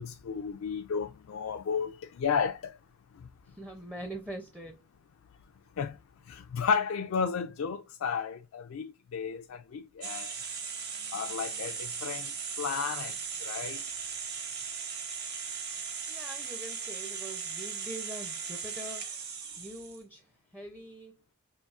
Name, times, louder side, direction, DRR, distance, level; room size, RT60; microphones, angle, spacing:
voice 1, 0.0-2.8 5.8-6.0 6.3-10.3 11.1-12.3 12.6-13.2 13.4-13.8, left 6 dB, 65° left, 0.3 m, -33 dB
voice 2, 3.4-4.8 16.1-19.1 19.6-21.2, right 1 dB, 5° right, 0.5 m, -43 dB
sound 1, 10.0-20.0, right 6 dB, 45° right, 0.9 m, -38 dB
5.5 x 2.6 x 2.4 m
head